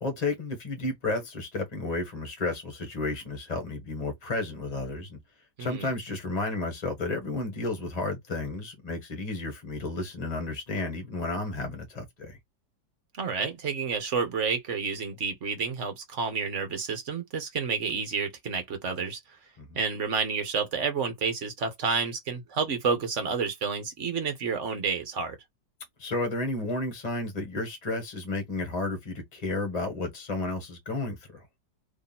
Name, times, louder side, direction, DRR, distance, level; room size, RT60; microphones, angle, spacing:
voice 1, 0.0-5.2 5.6-12.4 19.6-19.8 26.0-31.4, left 2 dB, 25° left, 1.4 m, -32 dB
voice 2, 5.6-5.9 13.2-19.2 19.7-25.4, right 5 dB, 50° right, 1.1 m, -30 dB
3.0 x 2.7 x 4.1 m
omnidirectional pair, 1.9 m